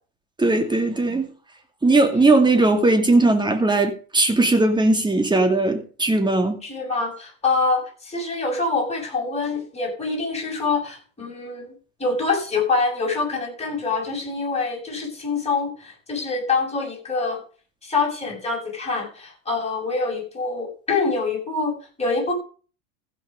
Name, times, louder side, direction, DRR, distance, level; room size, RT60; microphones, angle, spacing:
voice 1, 0.4-1.3 1.8-6.6, right 2 dB, 10° right, 2.4 m, -18 dB
voice 2, 6.6-17.4 17.8-22.3, left 4 dB, 15° left, 7.8 m, -25 dB
15.5 x 6.4 x 5.2 m
hypercardioid pair, 90°, 39 cm